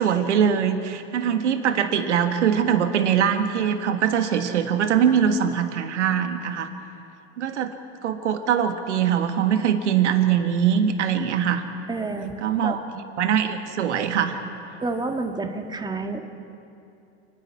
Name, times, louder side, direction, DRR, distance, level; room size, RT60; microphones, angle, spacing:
voice 1, 0.0-6.7 7.4-7.7 8.0-11.6 12.2-12.8 13.2-14.4, right 8 dB, 90° right, 7 dB, 1.6 m, -22 dB
voice 2, 11.9-12.8 14.8-16.2, right 3 dB, 10° right, 5 dB, 1.8 m, -29 dB
29.0 x 11.0 x 8.6 m, 2.7 s
hypercardioid pair, 110°, 34 cm